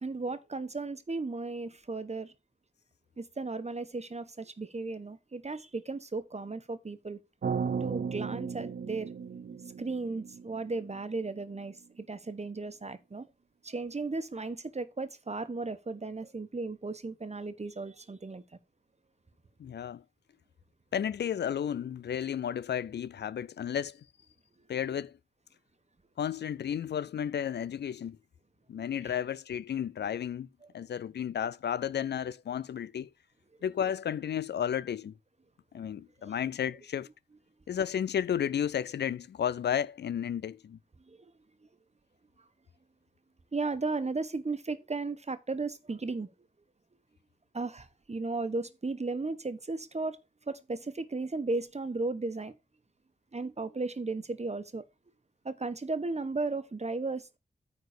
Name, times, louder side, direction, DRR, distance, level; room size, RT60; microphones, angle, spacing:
voice 1, 0.0-2.3 3.2-7.2 7.8-9.1 9.8-13.3 13.6-18.4 36.2-36.4 41.1-41.3 43.5-46.3 47.5-50.2 50.5-52.5 53.3-54.8 55.4-57.4, right 3 dB, 40° right, 1.2 m, -35 dB
sound 1, 7.4-11.6, right 6 dB, 65° right, 0.6 m, -36 dB
voice 2, 19.6-20.0 20.9-24.0 24.7-25.2 26.2-28.2 28.7-30.5 30.7-33.1 33.6-35.2 35.7-37.1 37.7-40.8, left 9 dB, 90° left, 0.4 m, -32 dB
9.5 x 4.1 x 6.7 m
cardioid pair, 45°, 17 cm